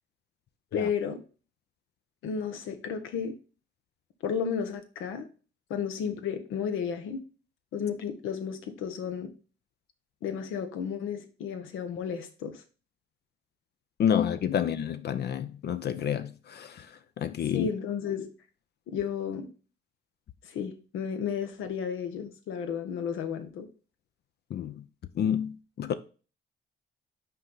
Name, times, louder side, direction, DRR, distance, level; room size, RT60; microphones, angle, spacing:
voice 1, 0.7-1.2 2.2-3.3 4.2-5.3 5.7-7.2 7.7-9.3 10.2-12.6 17.5-18.3 18.9-19.5 20.4-23.7, left 7 dB, 85° left, 1.1 m, -33 dB
voice 2, 14.0-16.7 17.2-17.7 24.5-24.7 25.2-25.9, left 9 dB, 55° left, 0.5 m, -29 dB
5.7 x 4.4 x 3.9 m
cardioid pair, 90°, 20 cm